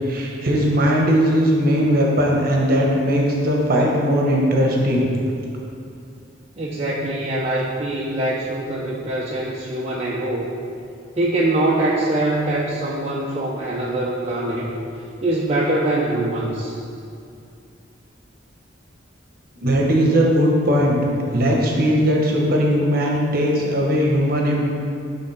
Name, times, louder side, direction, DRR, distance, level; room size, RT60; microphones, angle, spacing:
voice 1, 0.1-5.0 19.6-24.6, equal, 50° right, -1 dB, 1.0 m, -19 dB
voice 2, 6.6-10.5 11.2-14.8 15.2-16.8, right 1 dB, 35° right, -5 dB, 0.5 m, -23 dB
8.4 x 3.6 x 4.2 m, 2.5 s
head